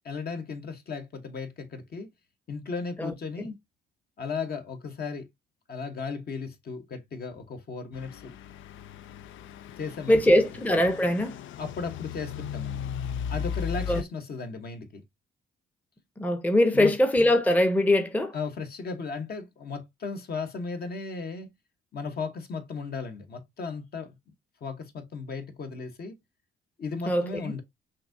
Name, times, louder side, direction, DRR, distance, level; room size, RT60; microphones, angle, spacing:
voice 1, 0.0-2.1 2.5-3.5 4.2-5.3 5.7-8.4 9.8-10.2 11.6-12.9 13.3-15.0 16.7-16.9 18.3-21.5 21.9-24.2 24.6-26.1 26.8-27.6, left 4 dB, 50° left, 1.1 m, -35 dB
voice 2, 3.0-3.5 10.1-11.4 13.9-14.0 16.2-18.3 27.1-27.6, left 1 dB, 10° left, 0.7 m, -22 dB
Truck / Idling, 7.9-14.0, left 8 dB, 75° left, 0.4 m, -36 dB
5.7 x 2.7 x 2.6 m
cardioid pair, 90°, 20 cm